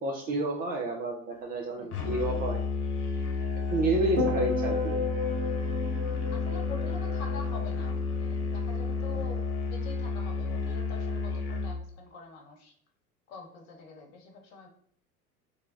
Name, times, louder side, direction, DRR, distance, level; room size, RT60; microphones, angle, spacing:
voice 1, 0.0-2.6 3.7-5.0, right 2 dB, 20° right, 0 dB, 0.4 m, -30 dB
voice 2, 1.7-2.2 6.3-12.7 13.3-14.7, left 4 dB, 50° left, 2 dB, 1.1 m, -45 dB
Musical instrument, 1.9-11.8, left 4 dB, 80° left, 0.8 m, -31 dB
sound 1, 4.2-8.6 8.9-9.3, left 2 dB, 85° right, 0.8 m, -33 dB
3.3 x 2.2 x 3.7 m, 0.62 s
figure-of-eight pair, 80°, 44 cm